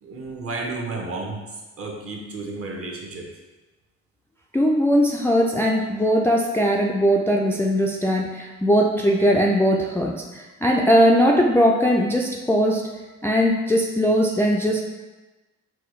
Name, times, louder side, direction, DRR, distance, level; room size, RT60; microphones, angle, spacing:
voice 1, 0.0-3.3, right 3 dB, 45° right, 0 dB, 0.9 m, -32 dB
voice 2, 4.5-12.9 13.2-14.8, equal, 10° left, -1 dB, 0.3 m, -20 dB
5.9 x 2.3 x 3.1 m, 1.2 s
cardioid pair, 90°, 30 cm